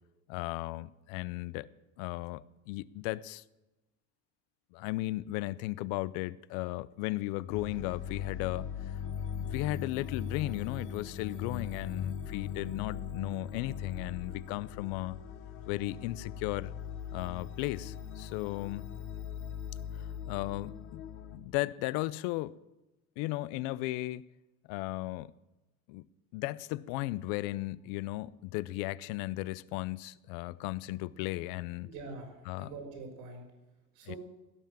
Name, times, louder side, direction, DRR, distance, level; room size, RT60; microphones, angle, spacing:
voice 1, 0.3-1.7 2.0-3.4 4.7-8.7 9.3-15.2 15.7-16.7 17.1-18.9 19.9-21.0 21.3-22.6 23.2-24.3 24.7-25.3 25.9-26.0 26.3-31.9 32.5-32.7 34.1-34.2, left 18 dB, 75° left, 0.6 m, -35 dB
sound 1, 7.5-21.4, left 8 dB, 35° left, 0.9 m, -40 dB
voice 2, 31.8-33.4 33.9-34.2, right 3 dB, 70° right, 4.0 m, -45 dB
16.5 x 5.8 x 8.9 m
cardioid pair, 175°, 35 cm